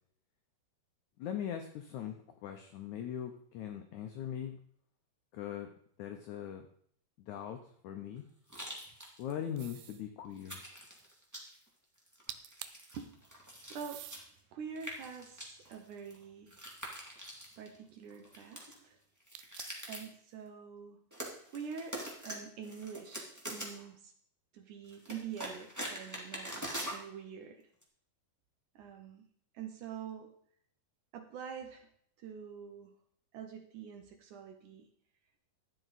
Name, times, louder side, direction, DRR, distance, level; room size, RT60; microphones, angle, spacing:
voice 1, 1.2-4.6 5.3-5.7 6.0-6.7 7.3-8.2 9.2-10.6, left 9 dB, 80° left, 6 dB, 1.7 m, -40 dB
sound 1, 8.5-9.3 9.6-9.7 10.4-11.7 12.0-14.3 14.7-17.7 18.1-18.8 19.2-20.1 21.1-22.3 22.6-23.8 24.9-27.0 27.8-27.9, equal, 10° right, 1.0 m, -44 dB
sound 2, 9.6-10.1 12.0-12.1 12.3-12.9 13.7-14.3 14.9-16.4 19.3-19.9, right 13 dB, 90° right, 2.5 m, -49 dB
voice 2, 12.9-14.1 14.5-16.6 17.6-19.0 19.9-21.0 21.5-24.1 24.5-27.7 28.8-29.3 29.5-30.3 31.1-31.9 32.2-32.9 33.3-34.9, right 7 dB, 70° right, 6 dB, 2.0 m, -46 dB
12.5 x 9.0 x 4.1 m, 0.64 s
omnidirectional pair, 4.4 m